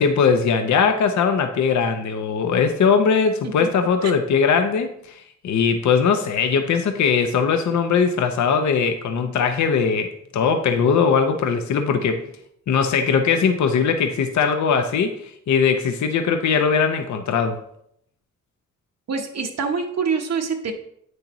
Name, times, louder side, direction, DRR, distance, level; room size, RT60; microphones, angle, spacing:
voice 1, 0.0-12.2 12.7-17.6, left 6 dB, 65° left, 6 dB, 0.7 m, -20 dB
voice 2, 19.1-20.7, right 5 dB, 55° right, 3 dB, 1.0 m, -25 dB
8.5 x 6.4 x 3.0 m, 0.72 s
cardioid pair, 120°, 32 cm